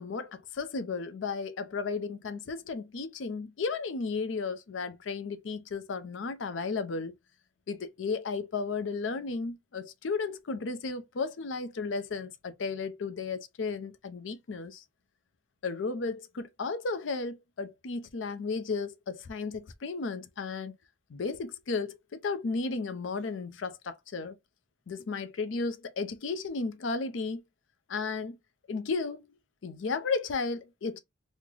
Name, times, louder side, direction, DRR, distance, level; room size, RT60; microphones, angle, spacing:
voice 1, 0.0-7.1 7.7-14.8 15.6-20.7 21.1-24.4 24.9-27.4 27.9-28.4 28.7-29.3 29.6-31.0, left 4 dB, 75° left, 0.5 m, -34 dB
3.2 x 2.1 x 3.6 m
head